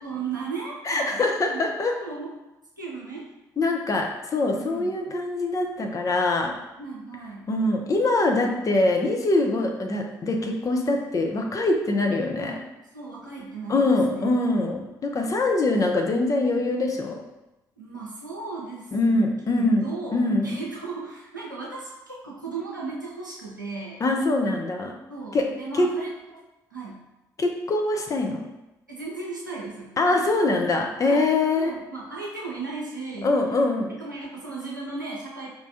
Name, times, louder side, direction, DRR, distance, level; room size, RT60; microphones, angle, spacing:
voice 1, 0.0-1.7 2.0-2.3 2.8-3.3 3.5-3.7 4.5-5.0 6.8-7.5 8.5-8.7 9.0-9.6 12.4-12.6 12.9-14.3 14.6-14.9 17.8-19.2 19.6-24.0 25.1-27.0 28.9-30.0 31.1-31.3 31.5-33.3 34.0-35.5, right 4 dB, 90° right, -4 dB, 0.6 m, -36 dB
voice 2, 0.9-1.9 3.6-6.6 7.5-12.6 13.7-17.2 18.9-20.6 24.0-24.9 25.3-25.5 25.8-25.9 27.4-28.5 30.0-31.7 33.2-33.9, left 2 dB, 35° left, 2 dB, 0.7 m, -23 dB
4.6 x 3.2 x 2.7 m, 0.94 s
figure-of-eight pair, 45°, 10 cm